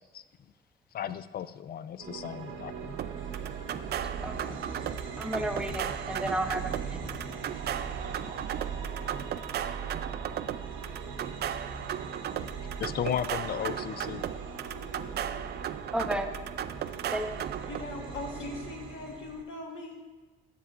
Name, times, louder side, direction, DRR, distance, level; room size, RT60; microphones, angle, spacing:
voice 1, 0.9-3.0 12.4-12.5 12.8-14.3, left 9 dB, 50° left, 14 dB, 0.4 m, -35 dB
sound 1, 2.0-19.4, right 6 dB, 75° right, 1.0 m, -39 dB
sound 2, 3.0-17.8, right 10 dB, 55° right, 0.4 m, -36 dB
voice 2, 4.2-4.6 5.2-7.1 15.9-16.3 17.1-17.3, right 1 dB, 5° right, 6 dB, 0.7 m, -32 dB
voice 3, 17.7-20.0, left 2 dB, 70° left, 0 dB, 1.6 m, -40 dB
12.0 x 6.9 x 2.5 m, 1.2 s
cardioid pair, 90°, 20 cm